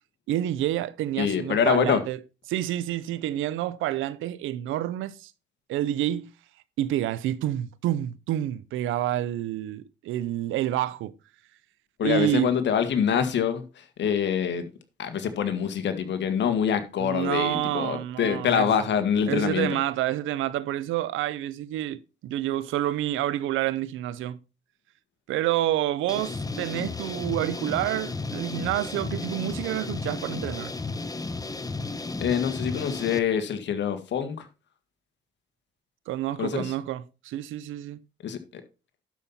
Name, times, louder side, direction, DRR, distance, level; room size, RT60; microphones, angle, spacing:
voice 1, 0.3-2.2 2.5-5.3 5.7-6.3 6.8-11.1 12.0-12.5 17.0-18.7 19.3-24.4 25.3-30.7 36.1-38.0, right 13 dB, 90° right, 0.7 m, -28 dB
voice 2, 1.2-2.0 12.0-14.7 15.0-19.7 32.2-34.5 36.4-36.7 38.2-38.6, left 8 dB, 65° left, 1.7 m, -25 dB
sound 1, 26.1-33.2, left 3 dB, 20° left, 1.0 m, -33 dB
11.5 x 5.5 x 4.2 m
cardioid pair, 90°, 20 cm